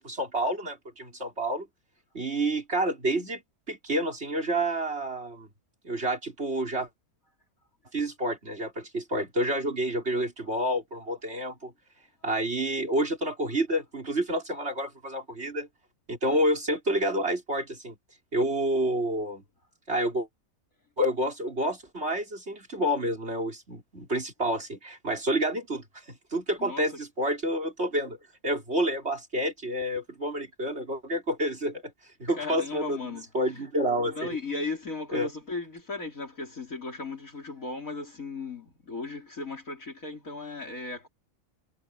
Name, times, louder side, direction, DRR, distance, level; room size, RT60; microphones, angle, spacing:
voice 1, 0.0-1.7 2.1-3.4 3.7-5.5 5.8-6.9 7.9-11.7 12.2-15.7 16.1-18.0 18.3-19.4 19.9-20.3 21.0-28.2 28.4-31.9 32.2-33.0 33.3-34.2 35.1-35.3, right 1 dB, 45° right, 4.7 m, -29 dB
voice 2, 26.6-26.9 32.3-33.7 34.0-41.1, left 3 dB, 65° left, 4.3 m, -36 dB
omnidirectional pair, 1.5 m